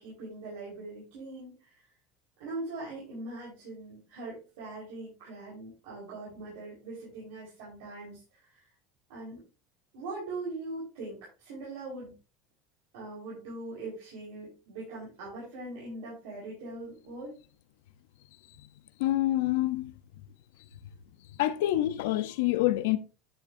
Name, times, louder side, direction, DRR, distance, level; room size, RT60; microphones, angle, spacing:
voice 1, 0.0-1.7 2.4-8.2 8.5-8.6 9.1-9.4 9.9-12.1 12.9-17.3, right 2 dB, 80° right, 4.6 m, -41 dB
voice 2, 19.0-19.9 21.4-23.0, left 15 dB, 85° left, 0.7 m, -26 dB
10.5 x 6.9 x 2.7 m
supercardioid pair, 145°, 0 cm